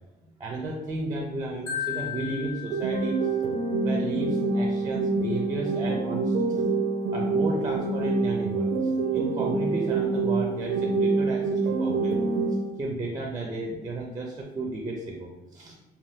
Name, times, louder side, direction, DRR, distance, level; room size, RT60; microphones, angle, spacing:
voice 1, 0.4-3.2 3.8-6.6 7.1-8.7 9.1-12.2 12.8-15.7, right 2 dB, 20° right, -1 dB, 0.4 m, -33 dB
Marimba xylophone, 1.7-3.7, left 9 dB, 55° left, 0.8 m, -35 dB
sound 1, 2.7-12.7, right 3 dB, 90° right, 0.4 m, -26 dB
2.6 x 2.3 x 3.4 m, 1.0 s
cardioid pair, 110°, 17 cm